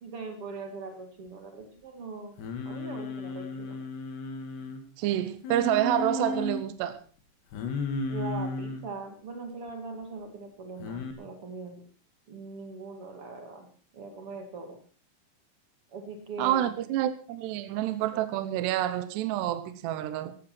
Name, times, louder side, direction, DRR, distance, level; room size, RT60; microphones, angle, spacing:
voice 1, 0.0-3.8 8.1-11.9 12.3-13.7 13.9-14.8 15.9-16.8, right 4 dB, 45° right, 1.8 m, -41 dB
Singing, 2.4-4.8 5.4-6.6 7.5-8.9 10.8-11.1, left 3 dB, 65° left, 4.1 m, -34 dB
voice 2, 5.0-7.0 16.4-20.4, right 12 dB, 70° right, 2.9 m, -28 dB
17.5 x 14.5 x 4.4 m
omnidirectional pair, 5.6 m